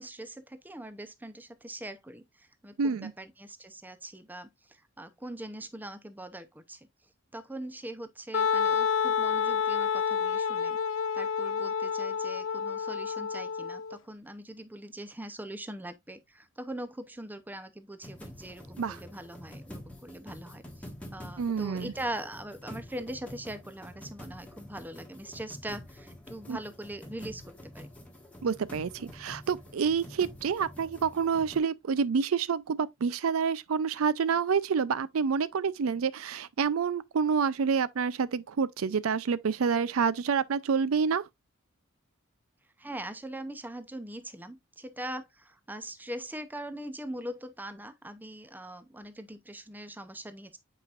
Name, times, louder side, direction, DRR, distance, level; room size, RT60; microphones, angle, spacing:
voice 1, 0.0-6.9 7.3-10.8 11.1-27.9 42.8-50.6, right 1 dB, 10° right, 0.6 m, -42 dB
voice 2, 2.8-3.1 18.8-19.0 21.4-21.9 26.5-26.6 28.4-41.2, right 6 dB, 85° right, 0.5 m, -28 dB
Wind instrument woodwind instrument, 8.3-14.0, left 6 dB, 70° left, 0.5 m, -29 dB
sound 1, 18.0-31.6, left 1 dB, 5° left, 1.7 m, -47 dB
8.5 x 4.9 x 2.4 m
head